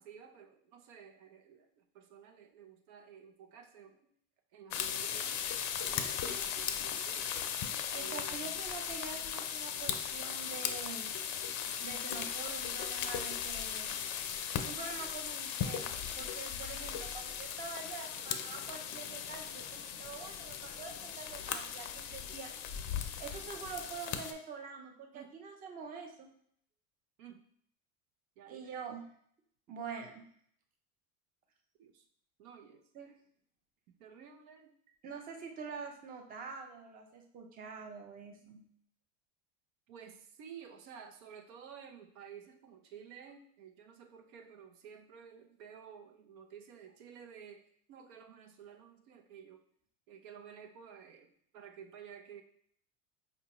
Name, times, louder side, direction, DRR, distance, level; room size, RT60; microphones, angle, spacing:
voice 1, 0.0-4.0 4.5-5.4 5.8-7.3 7.9-8.6 25.1-25.4 27.2-27.4 28.4-28.8 31.8-32.0 32.4-32.9 33.9-34.8 39.9-49.6 50.1-52.4, right 7 dB, 80° right, 4 dB, 0.7 m, -53 dB
sound 1, 4.7-24.3, left 8 dB, 45° left, 0.4 m, -38 dB
voice 2, 7.9-11.1 11.8-14.0 14.6-22.5 23.2-26.3 28.5-29.0 29.7-30.2 32.9-33.1 35.0-38.7, right 5 dB, 20° right, 4 dB, 0.4 m, -46 dB
4.9 x 2.2 x 2.9 m, 0.64 s
supercardioid pair, 120°, 41 cm